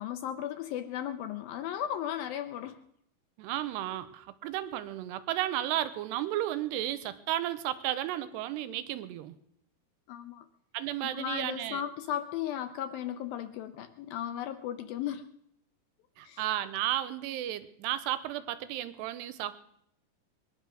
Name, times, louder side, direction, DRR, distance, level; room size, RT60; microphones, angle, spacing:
voice 1, 0.0-2.8 10.1-10.5 11.0-15.3 16.2-16.4, left 10 dB, 80° left, 9 dB, 2.2 m, -36 dB
voice 2, 3.4-9.4 10.7-11.8 16.2-19.6, right 13 dB, 90° right, 13 dB, 2.9 m, -33 dB
21.0 x 11.0 x 6.2 m, 0.73 s
omnidirectional pair, 4.8 m